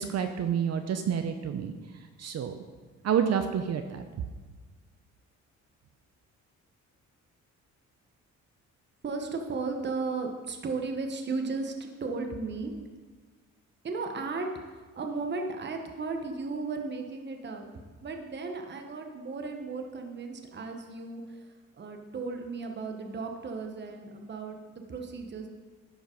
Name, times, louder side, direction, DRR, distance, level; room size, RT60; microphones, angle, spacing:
voice 1, 0.0-1.7 2.2-2.6 3.0-4.0, right 8 dB, 55° right, 7 dB, 0.7 m, -28 dB
voice 2, 9.0-12.7 13.8-17.6 18.0-21.4 21.8-25.5, right 4 dB, 35° right, 3 dB, 1.1 m, -35 dB
11.0 x 5.0 x 5.2 m, 1.4 s
cardioid pair, 90°, 30 cm